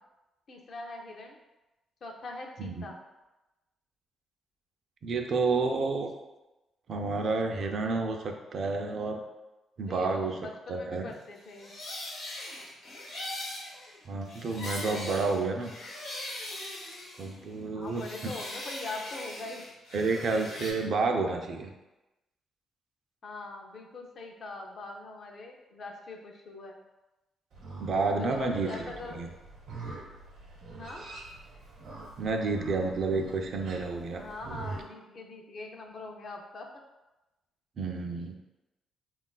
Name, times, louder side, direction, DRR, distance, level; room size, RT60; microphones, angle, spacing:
voice 1, 0.5-1.4 2.0-3.0 9.9-11.7 17.7-19.6 23.2-26.8 28.2-29.2 30.8-31.1 34.2-36.7, left 2 dB, 50° left, 1 dB, 0.4 m, -42 dB
voice 2, 5.0-6.1 6.9-9.2 9.8-10.4 10.7-11.1 14.1-15.7 17.2-18.0 19.9-21.7 27.8-29.3 32.2-34.2 37.8-38.4, right 3 dB, 55° right, 3 dB, 0.3 m, -30 dB
sound 1, 11.4-17.6 17.9-20.7, left 1 dB, 90° left, 0.9 m, -40 dB
Livestock farm animals working animals, 27.5-34.8, right 3 dB, 70° right, 0.8 m, -44 dB
3.6 x 2.3 x 2.3 m, 1.0 s
cardioid pair, 100°, 0 cm